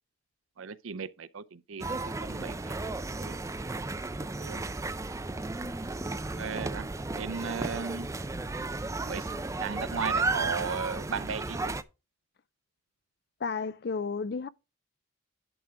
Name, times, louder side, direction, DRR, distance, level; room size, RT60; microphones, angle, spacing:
voice 1, 0.6-2.7 3.2-3.4 4.2-4.6 6.3-6.9 7.1-8.1 9.0-9.3 9.6-11.8, right 6 dB, 80° right, 0.6 m, -36 dB
sound 1, 1.8-11.8, right 3 dB, 15° right, 0.4 m, -34 dB
voice 2, 13.4-14.5, left 5 dB, 50° left, 0.4 m, -32 dB
11.0 x 3.6 x 5.7 m
head